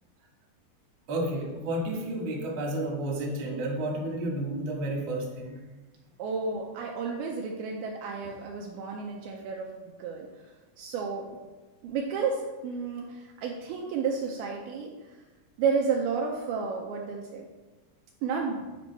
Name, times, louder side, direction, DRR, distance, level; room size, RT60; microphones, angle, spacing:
voice 1, 1.1-5.6, right 1 dB, 50° right, -3 dB, 1.5 m, -31 dB
voice 2, 6.2-9.7 10.0-10.3 10.8-11.2 11.8-14.9 15.6-17.4 18.2-18.6, right 5 dB, 90° right, 0 dB, 2.2 m, -31 dB
9.4 x 5.3 x 4.1 m, 1.2 s
omnidirectional pair, 5.0 m